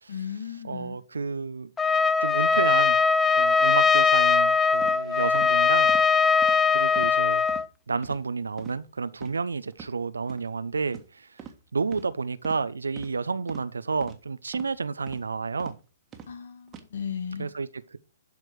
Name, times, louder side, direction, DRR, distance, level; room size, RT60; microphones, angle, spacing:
voice 1, 0.1-1.0 16.3-17.5, left 7 dB, 60° left, 2.1 m, -35 dB
voice 2, 0.6-1.7 2.2-3.0 3.4-5.9 6.7-7.4 7.9-11.4 11.7-15.7 17.4-18.0, right 4 dB, 75° right, 0.7 m, -30 dB
Trumpet, 1.8-7.7, left 5 dB, 10° left, 0.4 m, -21 dB
sound 1, 4.8-5.0 5.3-5.5 5.9-6.1 6.4-6.6 6.9-7.2 7.5-7.6 8.0-8.2 8.6-8.8 9.1-9.3 9.7-9.9 10.3-10.4 10.9-11.1 11.4-11.6 11.9-12.1 12.4-12.6 13.0-13.1 13.5-13.6 14.0-14.2 14.5-14.7 15.1-15.2 15.6-15.7 16.1-16.3 16.7-16.8, right 8 dB, 20° right, 1.6 m, -43 dB
12.0 x 4.8 x 4.8 m
figure-of-eight pair, 120°, 0 cm